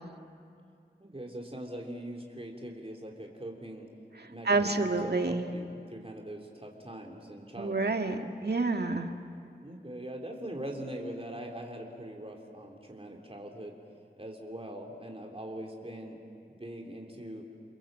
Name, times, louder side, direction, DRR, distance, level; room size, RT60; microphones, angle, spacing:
voice 1, 1.0-3.9 4.3-7.9 9.6-13.7 14.2-16.2 16.6-17.5, right 1 dB, 30° right, 0 dB, 3.2 m, -42 dB
voice 2, 4.5-5.5 7.6-9.1, right 3 dB, 65° right, 4 dB, 1.8 m, -28 dB
30.0 x 22.0 x 7.5 m, 2.4 s
wide cardioid pair, 40°, 18 cm